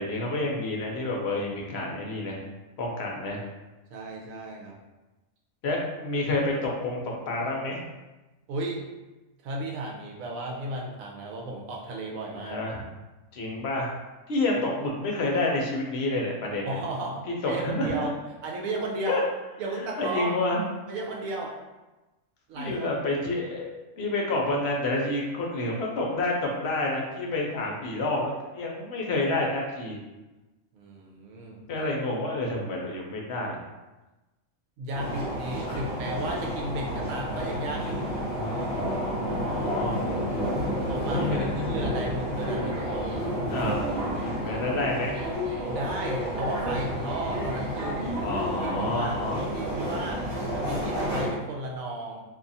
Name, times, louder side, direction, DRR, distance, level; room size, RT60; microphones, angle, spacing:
voice 1, 0.0-2.4 2.8-3.4 5.6-7.0 7.3-7.8 12.5-12.8 13.3-14.0 14.3-16.7 17.4-18.0 19.1-19.2 20.0-20.7 22.6-23.7 24.0-30.0 31.7-33.6 35.7-35.8 39.0-40.0 41.2-41.7 43.5-43.8 44.1-45.2 48.2-49.4, left 2 dB, 60° left, -1 dB, 0.8 m, -29 dB
voice 2, 3.9-4.8 8.5-8.8 9.4-12.6 16.7-18.1 18.4-19.2 19.6-20.3 20.9-21.5 22.5-22.9 30.7-31.6 34.8-38.1 39.8-40.3 40.9-43.1 45.7-48.1 48.6-50.2 50.6-52.2, right 2 dB, 75° right, -1 dB, 1.1 m, -34 dB
sound 1, 34.9-51.3, equal, 50° right, 1.4 m, -30 dB
2.7 x 2.4 x 4.0 m, 1.1 s
omnidirectional pair, 1.5 m